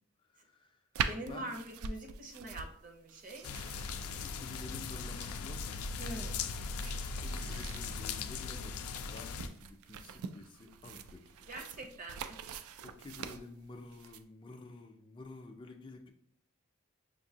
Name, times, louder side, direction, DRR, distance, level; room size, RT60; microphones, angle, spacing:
voice 1, 0.2-0.8 1.3-1.5 4.1-5.8 7.0-11.5 12.8-16.1, left 3 dB, 25° left, 3 dB, 0.4 m, -51 dB
sound 1, 0.9-14.2, right 6 dB, 90° right, 0.3 m, -44 dB
voice 2, 1.0-3.5 6.0-6.5 11.5-12.4, right 1 dB, 40° right, 3 dB, 0.7 m, -44 dB
sound 2, 3.4-9.5, left 4 dB, 90° left, 0.4 m, -39 dB
5.9 x 2.6 x 2.8 m, 0.62 s
head